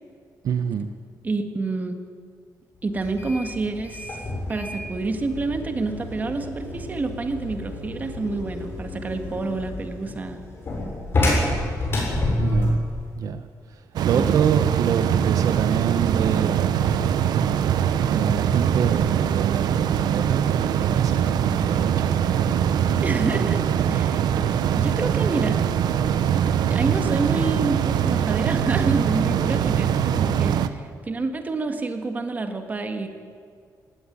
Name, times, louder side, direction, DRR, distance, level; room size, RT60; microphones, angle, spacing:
voice 1, 0.4-0.9 12.4-12.8 13.1-16.9 18.1-22.1, right 7 dB, 60° right, 9 dB, 0.9 m, -27 dB
voice 2, 1.2-2.0 2.8-4.2 4.5-10.4 14.1-14.3 23.0-24.2 24.8-25.6 26.6-33.1, right 3 dB, 25° right, 6 dB, 1.7 m, -28 dB
sound 1, 2.9-12.9, left 1 dB, 35° left, 7.2 m, -28 dB
sound 2, 14.0-30.7, right 9 dB, 85° right, 0.9 m, -22 dB
18.0 x 17.5 x 9.9 m, 2.1 s
wide cardioid pair, 175°, 7 cm